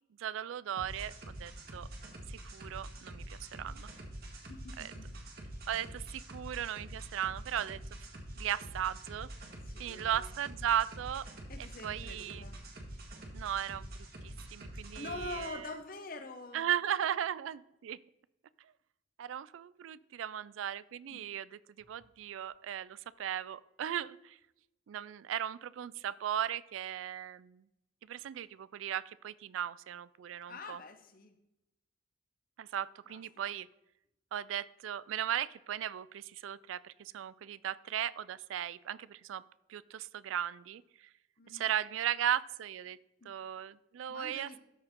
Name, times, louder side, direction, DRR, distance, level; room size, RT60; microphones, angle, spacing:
voice 1, 0.2-1.1 1.4-1.9 2.3-3.9 4.8-4.9 5.7-7.8 8.4-9.3 9.8-11.3 11.6-12.4 13.3-13.9 14.2-15.7 16.5-18.0 19.2-21.5 21.9-24.4 24.9-27.6 28.1-30.8 32.6-33.7 34.3-39.4 39.7-40.8 41.5-43.0 43.2-44.6, right 10 dB, 85° right, 19 dB, 0.3 m, -37 dB
sound 1, 0.8-15.5, right 1 dB, 50° right, 1.6 m, -46 dB
voice 2, 4.5-5.2 9.6-10.3 11.5-12.6 14.7-16.7 21.1-21.3 30.5-31.4 33.1-33.2 33.5-33.6 41.4-41.7 43.2-43.3 44.1-44.6, left 2 dB, 45° left, 8 dB, 0.8 m, -45 dB
13.0 x 4.6 x 3.6 m, 0.88 s
head